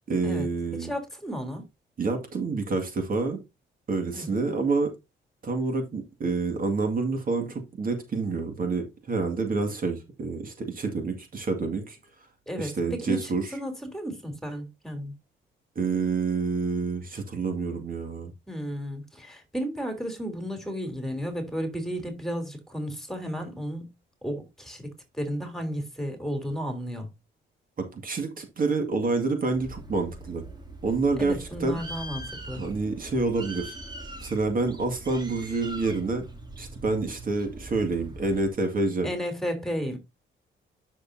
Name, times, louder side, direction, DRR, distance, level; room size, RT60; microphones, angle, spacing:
voice 1, 0.1-0.9 2.0-3.4 3.9-4.9 5.4-12.0 12.6-13.5 15.8-18.3 27.8-30.4 30.8-31.8 32.5-33.8 34.2-36.2 36.6-39.1, right 3 dB, 45° right, 2.1 m, -28 dB
voice 2, 0.8-1.6 4.1-4.4 12.5-15.1 18.5-23.9 24.2-27.1 31.2-32.7 39.0-40.0, equal, ahead, 3.3 m, -33 dB
Bird, 29.5-38.5, right 2 dB, 20° right, 2.7 m, -42 dB
9.9 x 6.5 x 2.7 m
cardioid pair, 90°, 20 cm